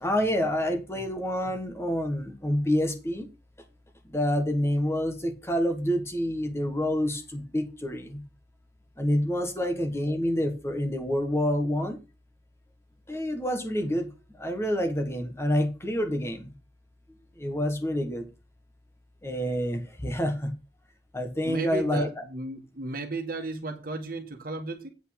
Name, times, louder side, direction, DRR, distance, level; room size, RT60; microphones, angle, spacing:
voice 1, 0.0-3.3 4.1-8.2 9.0-12.0 13.1-14.1 14.4-16.5 17.4-18.2 19.2-20.5 21.1-22.1, equal, 15° left, 1.4 m, -27 dB
voice 2, 21.4-24.9, right 2 dB, 50° right, 1.6 m, -34 dB
8.7 x 5.5 x 5.8 m
head